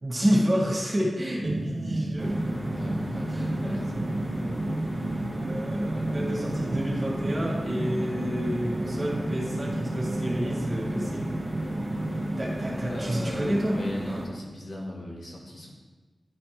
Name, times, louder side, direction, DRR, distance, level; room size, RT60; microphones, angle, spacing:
voice 1, 0.0-2.3 3.3-3.8 5.4-11.2 12.4-13.8, equal, 35° right, -3 dB, 1.7 m, -29 dB
sound 1, 1.4-13.0, right 2 dB, 85° right, 0.7 m, -33 dB
sound 2, 2.2-14.3, equal, 10° right, 1.4 m, -34 dB
voice 2, 2.7-3.9 12.8-15.7, left 1 dB, 70° left, -3 dB, 1.6 m, -38 dB
9.7 x 4.3 x 3.3 m, 1.3 s
wide cardioid pair, 90°, 0 cm